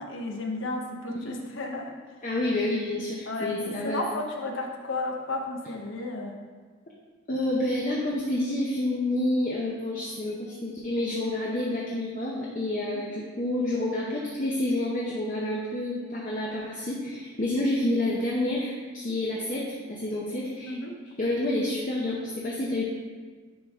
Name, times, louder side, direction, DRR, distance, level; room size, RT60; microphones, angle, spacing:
voice 1, 0.0-1.9 3.3-6.4 12.9-13.2 20.7-20.9, left 2 dB, 65° left, 2 dB, 0.8 m, -33 dB
voice 2, 2.2-4.0 7.3-20.7 21.2-22.9, left 1 dB, 40° left, -4 dB, 0.7 m, -29 dB
10.0 x 3.5 x 3.6 m, 1.5 s
head